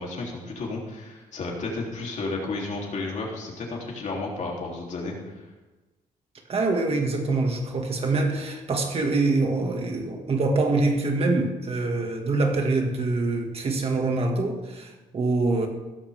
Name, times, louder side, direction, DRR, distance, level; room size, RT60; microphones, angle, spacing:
voice 1, 0.0-5.5, left 3 dB, 50° left, -1 dB, 3.3 m, -32 dB
voice 2, 6.5-15.7, right 3 dB, 40° right, 2 dB, 2.0 m, -25 dB
16.0 x 14.5 x 3.6 m, 1.1 s
wide cardioid pair, 165°, 15 cm